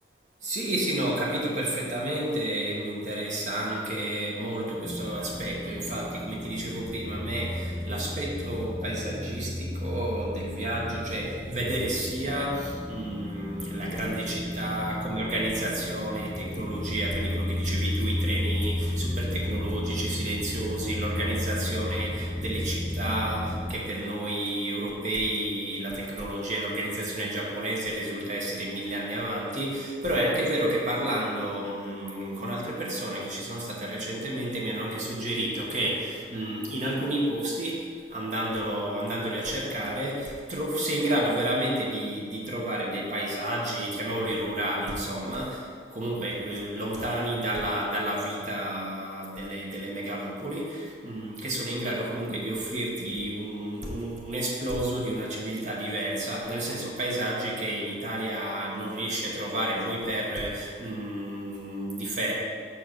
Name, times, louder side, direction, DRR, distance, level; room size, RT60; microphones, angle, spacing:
voice 1, 0.4-62.3, right 1 dB, 45° right, -3 dB, 1.4 m, -31 dB
sound 1, 4.8-23.7, left 1 dB, 10° left, 0.4 m, -33 dB
6.5 x 4.5 x 6.0 m, 2.1 s
head